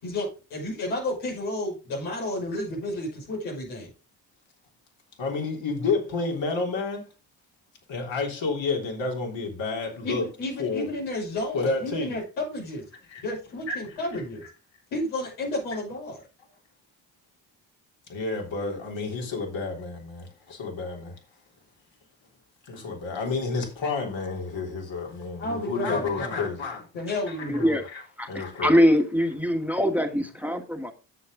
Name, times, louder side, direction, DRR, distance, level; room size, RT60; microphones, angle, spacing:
voice 1, 0.0-3.9 10.0-12.8 13.2-14.4 14.9-16.2 25.4-26.4 26.9-27.8, left 1 dB, 90° left, 5.9 m, -31 dB
voice 2, 5.2-7.1 7.9-10.2 10.6-10.9 11.5-12.1 13.1-13.2 13.7-14.2 18.1-21.2 22.7-26.9 27.6-28.8, left 4 dB, 65° left, 3.7 m, -30 dB
voice 3, 27.5-27.8 28.2-30.9, equal, 5° right, 1.7 m, -23 dB
9.7 x 7.6 x 3.8 m
hypercardioid pair, 50°, 49 cm